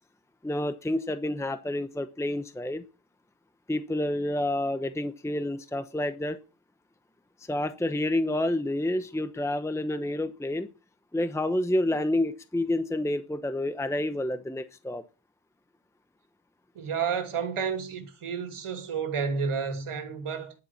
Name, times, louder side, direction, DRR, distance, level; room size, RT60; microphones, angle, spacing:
voice 1, 0.4-2.8 3.7-6.4 7.5-10.7 11.1-15.0, left 1 dB, 5° left, 0.8 m, -29 dB
voice 2, 16.7-20.5, right 6 dB, 80° right, 2.7 m, -31 dB
10.5 x 9.9 x 7.3 m
wide cardioid pair, 160°, 50 cm